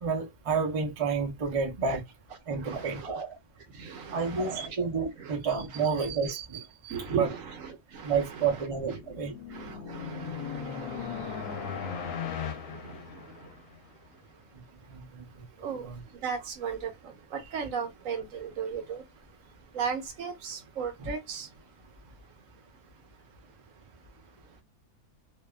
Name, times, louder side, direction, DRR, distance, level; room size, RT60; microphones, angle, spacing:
voice 1, 0.0-2.0 2.5-3.4 4.1-7.3 8.0-9.3 14.9-15.3 15.6-16.0 21.0-21.1, right 5 dB, 45° right, 0.4 m, -30 dB
voice 2, 2.6-3.1 3.7-4.8 5.2-5.4 5.7-5.9 6.9-9.0 9.5-14.5 15.5-22.0 22.4-22.5 24.0-24.1 24.4-24.6, right 6 dB, 70° right, 1.0 m, -38 dB
sound 1, 8.8-13.8, left 8 dB, 75° left, 1.0 m, -38 dB
2.6 x 2.2 x 2.3 m
omnidirectional pair, 1.5 m